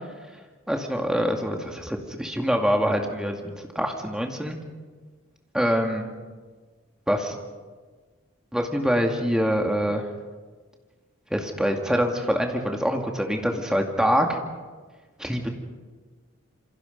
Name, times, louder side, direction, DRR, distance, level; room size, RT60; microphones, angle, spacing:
voice 1, 0.7-4.6 5.5-6.1 7.1-7.4 8.5-10.0 11.3-14.4 15.2-15.5, equal, 5° right, 2 dB, 2.2 m, -25 dB
27.5 x 25.0 x 5.4 m, 1.4 s
head